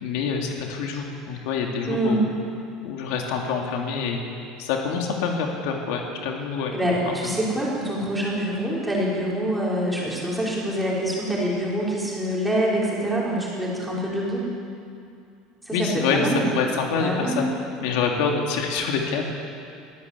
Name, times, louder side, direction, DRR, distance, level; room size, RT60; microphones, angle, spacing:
voice 1, 0.0-2.3 2.8-4.2 4.6-6.7 7.1-7.2 15.7-17.4 17.8-19.2, left 5 dB, 70° left, 1 dB, 3.0 m, -26 dB
voice 2, 1.9-2.2 6.7-14.4 15.7-16.5 16.9-17.4, right 1 dB, 5° right, -6 dB, 5.6 m, -25 dB
23.5 x 16.0 x 8.6 m, 2.5 s
cardioid pair, 165°, 0 cm